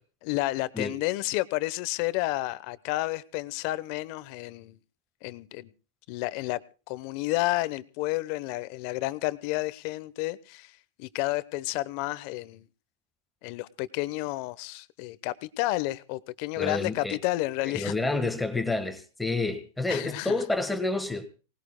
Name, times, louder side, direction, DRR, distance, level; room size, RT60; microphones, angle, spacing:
voice 1, 0.2-4.8 5.2-5.7 6.1-6.6 6.9-12.6 13.4-17.9 19.9-20.4, left 18 dB, 50° left, 16 dB, 0.9 m, -31 dB
voice 2, 16.6-17.2 17.6-21.3, left 2 dB, 5° left, 8 dB, 1.5 m, -29 dB
28.0 x 19.0 x 2.2 m, 0.33 s
supercardioid pair, 140°, 0 cm